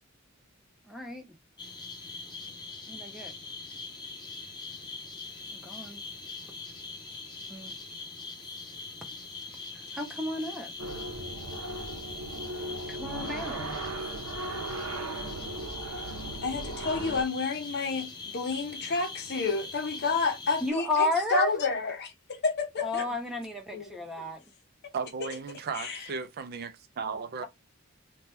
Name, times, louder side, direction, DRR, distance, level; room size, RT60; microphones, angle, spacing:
voice 1, 0.9-1.3 2.9-3.3 5.5-6.0 7.5-7.8 9.9-10.7 12.9-13.8 20.6-21.5 22.8-24.4, left 2 dB, ahead, 0.6 m, -32 dB
sound 1, 1.6-20.7, left 3 dB, 20° left, 0.9 m, -42 dB
sound 2, 10.8-17.2, right 2 dB, 90° right, 0.7 m, -37 dB
voice 2, 16.4-23.1 23.7-24.0 25.8-26.0, left 4 dB, 55° left, 0.7 m, -30 dB
voice 3, 24.9-27.5, right 5 dB, 50° right, 0.4 m, -35 dB
2.8 x 2.2 x 3.3 m
head